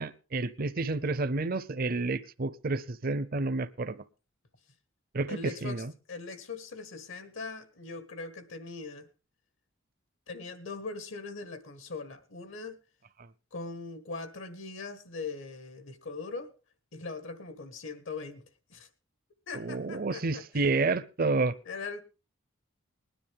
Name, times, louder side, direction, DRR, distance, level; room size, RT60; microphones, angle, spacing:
voice 1, 0.0-4.0 5.1-5.9 19.5-21.5, right 3 dB, 45° right, 0.6 m, -30 dB
voice 2, 5.3-9.1 10.3-12.8 13.5-16.5 16.9-18.9 19.5-20.6 21.6-22.0, left 4 dB, 70° left, 1.6 m, -41 dB
20.0 x 10.0 x 3.6 m
head